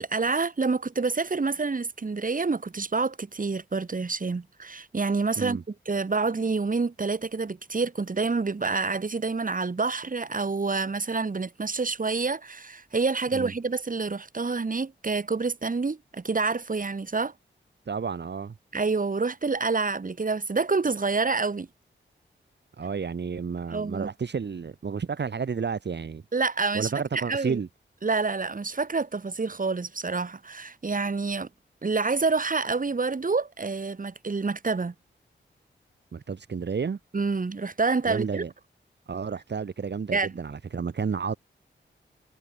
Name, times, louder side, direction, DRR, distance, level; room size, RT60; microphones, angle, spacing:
voice 1, 0.0-5.6 5.9-17.3 18.7-21.7 23.7-24.1 26.3-27.6 28.0-31.5 31.8-34.9 37.1-38.4 40.1-40.3, right 4 dB, 45° right, 2.6 m, -27 dB
voice 2, 17.9-18.5 22.8-26.2 26.7-27.7 36.1-37.0 38.1-38.5 39.1-41.3, right 5 dB, 60° right, 1.8 m, -31 dB
cardioid pair, 60°, 20 cm